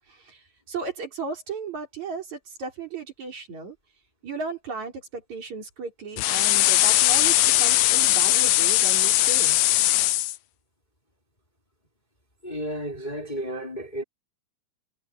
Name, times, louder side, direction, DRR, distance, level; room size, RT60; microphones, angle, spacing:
voice 1, 0.1-3.8 4.2-9.6, right 4 dB, 55° right, 5.8 m, -35 dB
sound 1, 6.2-10.4, left 16 dB, 80° left, 1.6 m, -20 dB
voice 2, 12.4-14.0, right 1 dB, 15° left, 3.7 m, -32 dB
omnidirectional pair, 3.8 m